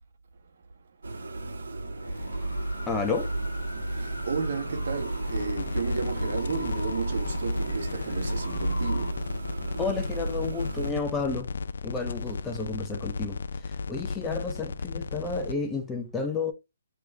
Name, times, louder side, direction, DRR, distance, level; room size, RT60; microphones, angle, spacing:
sound 1, 1.0-10.9, right 2 dB, 80° right, 1.1 m, -34 dB
sound 2, 1.9-9.1, left 1 dB, 85° left, 1.3 m, -38 dB
voice 1, 2.9-3.3 9.8-11.5 11.8-16.5, left 4 dB, 10° left, 0.5 m, -31 dB
voice 2, 4.3-9.2, right 6 dB, 60° right, 1.3 m, -32 dB
sound 3, 5.3-15.5, left 5 dB, 65° left, 0.3 m, -35 dB
3.3 x 3.0 x 3.8 m
hypercardioid pair, 150°, 0 cm